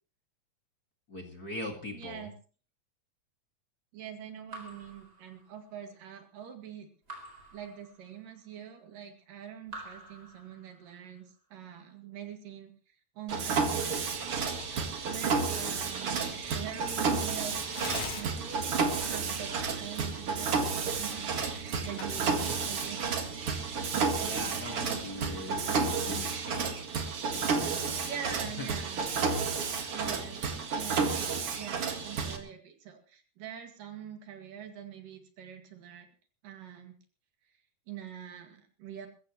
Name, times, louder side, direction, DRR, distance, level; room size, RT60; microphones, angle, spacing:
voice 1, 1.1-2.3 22.1-22.6 24.2-26.8 27.1-29.0, left 2 dB, 35° left, 3 dB, 1.9 m, -42 dB
voice 2, 1.9-2.3 3.9-6.9 7.5-11.3 11.5-12.7 13.2-14.1 15.1-17.6 18.1-23.2 28.0-29.1 29.9-30.4 30.7-36.1 36.4-37.0 37.9-39.1, right 9 dB, 85° right, 5 dB, 3.8 m, -44 dB
Raindrop / Drip, 4.5-5.9 7.1-8.5 9.7-11.1, right 2 dB, 25° right, 4.8 m, -48 dB
Mechanisms, 13.3-32.4, right 5 dB, 50° right, 2.5 m, -31 dB
Tearing, 13.6-25.1, left 4 dB, 90° left, 4.8 m, -49 dB
21.5 x 15.0 x 3.1 m, 0.39 s
omnidirectional pair, 3.8 m